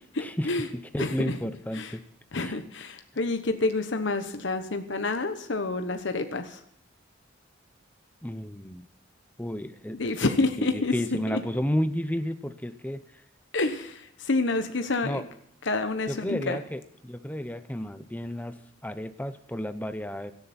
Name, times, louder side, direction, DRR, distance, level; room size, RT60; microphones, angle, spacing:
voice 1, 0.1-0.7 1.0-1.4 1.7-1.9 2.3-6.6 9.9-10.9 11.3-11.4 13.5-15.2 15.6-16.6, left 3 dB, 65° left, 7 dB, 1.1 m, -28 dB
voice 2, 0.9-2.0 2.4-2.6 8.2-8.9 9.4-10.3 10.6-13.0 15.0-15.2 16.1-18.5 18.8-20.3, equal, 10° left, 10 dB, 0.8 m, -32 dB
17.5 x 13.5 x 4.4 m, 0.71 s
head